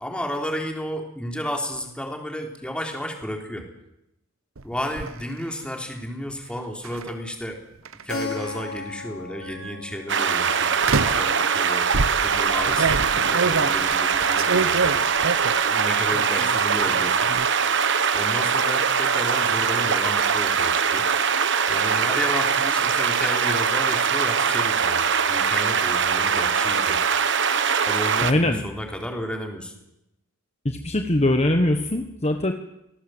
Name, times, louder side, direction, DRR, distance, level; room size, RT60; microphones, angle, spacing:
voice 1, 0.0-3.7 4.6-7.6 8.0-10.7 11.0-11.9 12.2-15.1 15.5-17.3 18.1-21.1 21.7-27.0 27.9-29.7, equal, 5° left, 2 dB, 3.7 m, -32 dB
sound 1, 4.6-5.1 6.8-7.1 7.9-8.7 9.4-9.7 10.8-11.3 11.9-15.7 16.1-16.6 16.9-17.5, right 4 dB, 85° right, 1.1 m, -27 dB
Keyboard (musical), 8.1-12.6, left 4 dB, 85° left, 5.9 m, -37 dB
sound 2, 10.1-28.3, right 6 dB, 60° right, 1.3 m, -22 dB
voice 2, 28.2-28.6 30.6-32.5, left 1 dB, 30° left, 5 dB, 1.3 m, -22 dB
26.0 x 18.5 x 8.0 m, 0.87 s
head